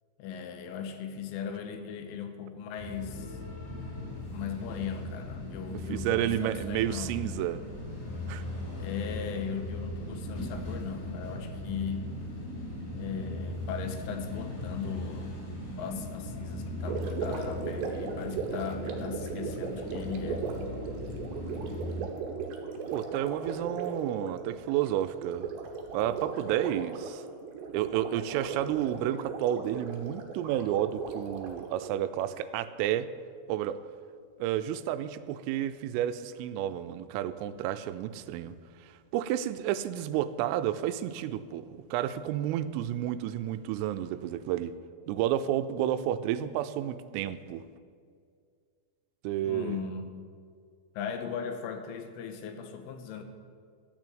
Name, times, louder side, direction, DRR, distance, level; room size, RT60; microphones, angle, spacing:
voice 1, 0.2-3.4 4.3-7.2 8.8-12.2 12.9-15.4 15.8-20.5 49.4-50.1 50.9-53.2, left 7 dB, 85° left, 7 dB, 3.3 m, -38 dB
sound 1, 2.8-22.1, left 1 dB, 55° left, 5.6 m, -38 dB
voice 2, 5.9-7.6 8.3-8.4 22.9-25.5 25.9-27.2 27.7-33.1 33.5-33.8 34.4-38.6 39.1-44.7 45.1-47.6 49.2-49.8, right 11 dB, 85° right, 12 dB, 3.2 m, -31 dB
Gurgling, 16.8-32.1, right 5 dB, 70° right, 3.0 m, -37 dB
13.0 x 6.1 x 8.6 m, 2.2 s
omnidirectional pair, 5.8 m